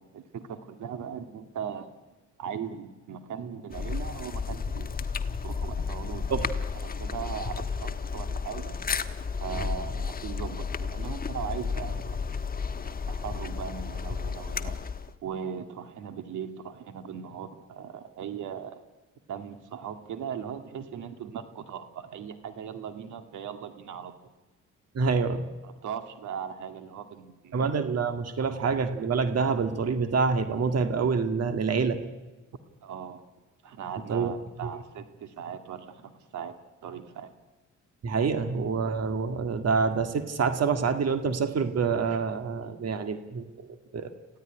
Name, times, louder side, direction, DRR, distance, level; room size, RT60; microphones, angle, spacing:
voice 1, 0.0-1.9 2.4-4.9 5.4-6.5 6.8-8.8 9.4-12.3 12.8-14.7 15.2-18.8 19.3-24.1 25.6-27.6 32.8-33.2 33.6-36.6 36.8-37.3, right 7 dB, 75° right, 8 dB, 2.1 m, -39 dB
sound 1, 3.7-15.1, left 5 dB, 30° left, 1.2 m, -32 dB
voice 2, 24.9-25.5 27.5-32.1 34.1-34.3 34.6-34.7 38.0-43.7 43.9-44.1, right 5 dB, 55° right, 8 dB, 1.9 m, -27 dB
27.0 x 15.5 x 10.0 m, 1.2 s
cardioid pair, 90°, 30 cm